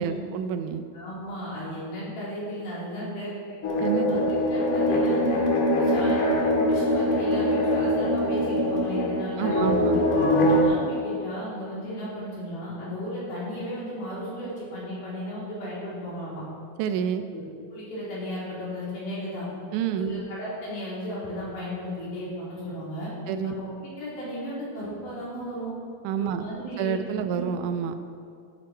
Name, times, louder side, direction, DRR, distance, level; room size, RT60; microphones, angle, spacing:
voice 1, 0.0-0.8 3.8-4.3 9.4-10.0 16.8-17.3 19.7-20.2 23.3-23.6 26.0-26.5 26.8-28.0, right 7 dB, 80° right, 8 dB, 1.8 m, -28 dB
voice 2, 0.9-3.3 4.1-5.4 5.8-10.1 10.6-16.4 17.3-17.4 17.7-19.5 19.9-23.1 23.4-23.6 24.0-25.7 26.2-27.5, equal, 80° left, -8 dB, 5.5 m, -35 dB
sound 1, 3.6-10.6, left 1 dB, 65° left, 2.9 m, -23 dB
13.5 x 11.0 x 4.4 m, 2.3 s
omnidirectional pair, 4.3 m